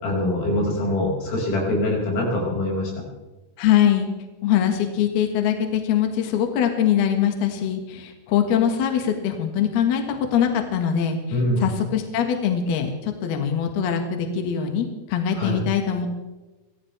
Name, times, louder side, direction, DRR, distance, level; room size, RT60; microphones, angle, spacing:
voice 1, 0.0-2.9 11.3-11.7 15.4-15.6, left 1 dB, 85° left, -2 dB, 8.7 m, -23 dB
voice 2, 3.6-4.1 4.4-16.1, left 9 dB, 60° left, 4 dB, 3.2 m, -22 dB
24.5 x 16.5 x 3.4 m, 1.1 s
omnidirectional pair, 5.8 m